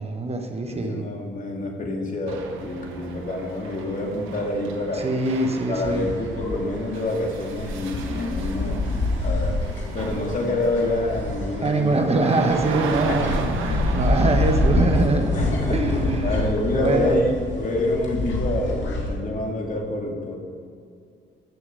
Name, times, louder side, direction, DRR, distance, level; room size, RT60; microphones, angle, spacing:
voice 1, 0.0-1.1 4.9-6.1 11.6-15.3 15.7-16.4 16.7-17.3, right 2 dB, 30° right, 4 dB, 1.3 m, -23 dB
voice 2, 0.7-5.1 5.7-8.9 9.2-9.6 9.9-12.0 13.1-13.4 13.7-14.2 15.3-20.4, left 1 dB, 40° left, 0 dB, 2.4 m, -27 dB
sound 1, 2.3-16.5, right 4 dB, 90° right, 1.3 m, -35 dB
sound 2, 5.8-19.1, left 2 dB, 70° left, 2.5 m, -27 dB
15.0 x 6.9 x 5.5 m, 2.3 s
cardioid pair, 90°, 20 cm